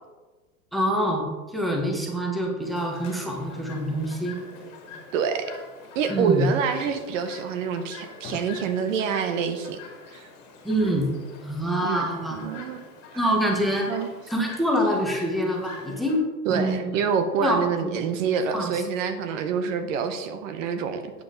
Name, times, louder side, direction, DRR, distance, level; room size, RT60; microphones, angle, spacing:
voice 1, 0.7-4.4 6.1-6.4 10.6-11.1 11.4-12.4 13.1-13.9 14.3-16.2 16.5-17.0 17.4-18.1 18.5-18.7, equal, ahead, 0 dB, 1.1 m, -25 dB
Chirp tweet, 2.6-16.2, left 4 dB, 30° left, 2.4 m, -44 dB
voice 2, 5.1-5.5 5.9-9.8 10.1-10.3 11.8-12.8 13.9-14.1 16.5-21.1, right 6 dB, 55° right, 9 dB, 0.9 m, -27 dB
8.6 x 7.4 x 3.9 m, 1.2 s
hypercardioid pair, 140°, 47 cm